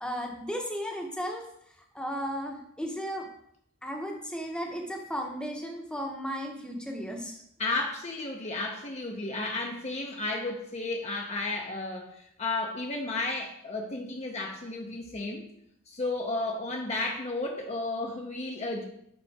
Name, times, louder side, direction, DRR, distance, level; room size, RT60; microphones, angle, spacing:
voice 1, 0.0-1.4 1.9-3.3 3.8-7.4, equal, 5° left, 1 dB, 0.9 m, -35 dB
voice 2, 7.6-15.5 15.9-18.8, left 2 dB, 30° left, 1 dB, 0.6 m, -33 dB
5.4 x 5.3 x 4.7 m, 0.75 s
head